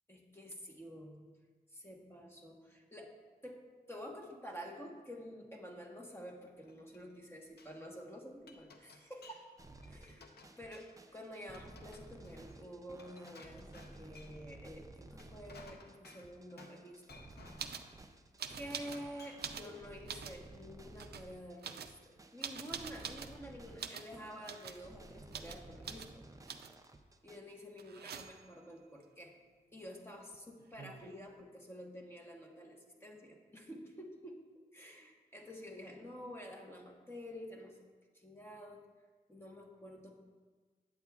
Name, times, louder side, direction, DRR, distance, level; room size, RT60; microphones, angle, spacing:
voice 1, 0.1-1.2 1.7-3.1 3.4-9.4 9.9-10.2 10.6-10.9 11.1-17.2 18.5-26.2 27.2-29.3 29.7-34.4 34.7-37.8 38.1-38.9 39.3-40.3, equal, 15° left, 0 dB, 1.2 m, -49 dB
Glass, 6.3-7.2 7.4-7.8 8.2-9.5 9.8-11.1 11.5-14.5 15.0-16.8 17.1-18.0 18.5-19.6, left 3 dB, 80° left, 0.6 m, -59 dB
sound 1, 9.6-27.4, right 2 dB, 20° right, 0.5 m, -55 dB
sound 2, 17.6-17.9 18.4-19.0 19.3-20.4 20.9-21.2 21.6-23.4 23.8-24.1 24.4-24.8 25.3-25.6 25.8-26.1 26.5-26.9 27.8-28.5 30.3-30.4 30.6-31.2, right 7 dB, 80° right, 0.4 m, -45 dB
9.2 x 8.1 x 2.4 m, 1.4 s
wide cardioid pair, 70°, 16 cm